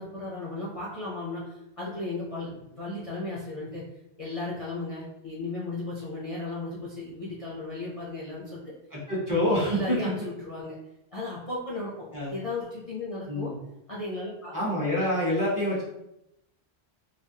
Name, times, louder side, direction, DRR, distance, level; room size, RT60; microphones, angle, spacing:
voice 1, 0.0-3.8 4.2-8.6 9.5-10.8 11.1-13.5 13.9-14.5, left 2 dB, 40° left, -6 dB, 0.5 m, -35 dB
voice 2, 8.9-10.0 12.1-12.3 13.3-13.6 14.5-15.8, left 1 dB, 20° right, -8 dB, 0.8 m, -26 dB
3.4 x 2.1 x 2.7 m, 0.86 s
omnidirectional pair, 1.1 m